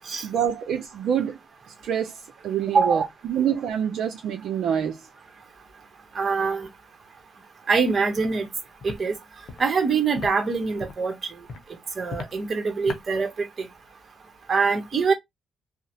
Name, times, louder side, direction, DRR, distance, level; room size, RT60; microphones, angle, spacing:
voice 1, 0.2-1.4 1.7-3.0 3.3-5.0, right 8 dB, 75° right, 0.5 m, -26 dB
voice 2, 2.7-3.1 6.1-6.7 7.7-8.5 8.8-9.1 9.6-11.1 12.0-13.3 13.6-13.7 14.5-15.1, right 5 dB, 40° right, 0.9 m, -23 dB
Walk footsteps, 8.2-8.3 8.8-9.0 9.5-9.6 10.2-10.3 10.8-11.0 11.5-11.6 12.1-12.3 12.9-13.0, left 4 dB, 60° left, 0.7 m, -36 dB
2.8 x 2.0 x 2.8 m
cardioid pair, 90°, 0 cm